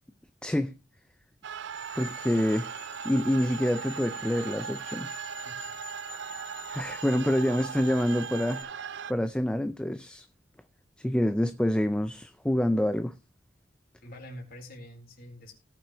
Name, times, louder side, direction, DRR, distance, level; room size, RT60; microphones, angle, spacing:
voice 1, 0.4-0.7 2.0-5.3 6.7-10.2 11.0-13.2, left 1 dB, 5° left, 0.4 m, -27 dB
sound 1, 1.4-9.1, right 7 dB, 65° right, 0.4 m, -39 dB
sound 2, 1.7-8.6, left 5 dB, 35° left, 2.5 m, -48 dB
voice 2, 14.0-15.5, left 1 dB, 50° left, 3.9 m, -45 dB
18.5 x 7.3 x 3.0 m
head